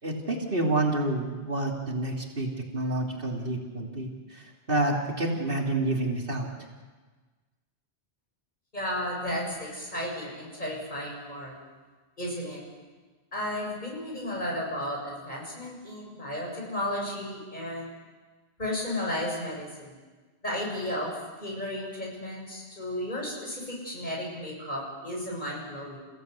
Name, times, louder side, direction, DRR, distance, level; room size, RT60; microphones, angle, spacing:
voice 1, 0.0-6.5, right 2 dB, 55° right, 0 dB, 3.2 m, -29 dB
voice 2, 8.7-11.5 12.2-12.6 13.3-17.9 18.6-20.0 20.4-21.1 21.4-26.0, left 1 dB, 45° left, -2 dB, 7.6 m, -33 dB
29.5 x 16.5 x 8.3 m, 1.4 s
omnidirectional pair, 1.1 m